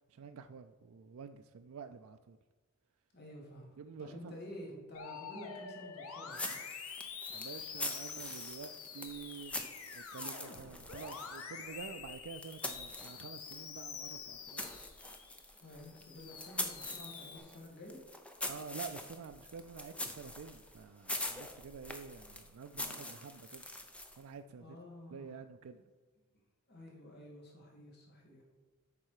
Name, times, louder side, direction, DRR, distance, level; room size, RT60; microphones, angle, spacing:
voice 1, 0.1-2.4 3.8-4.3 7.3-14.7 18.5-23.6 24.2-24.8 25.1-25.8, right 6 dB, 75° right, 8 dB, 0.4 m, -49 dB
voice 2, 3.1-6.6 15.6-18.0 24.6-25.3 26.7-28.4, equal, 50° left, -2 dB, 2.0 m, -50 dB
Musical instrument, 4.9-15.4 15.8-17.4, left 6 dB, 80° left, 1.0 m, -47 dB
sound 1, 6.3-13.7 14.0-24.3, left 1 dB, 5° left, 0.6 m, -44 dB
8.5 x 5.7 x 4.8 m, 1.3 s
head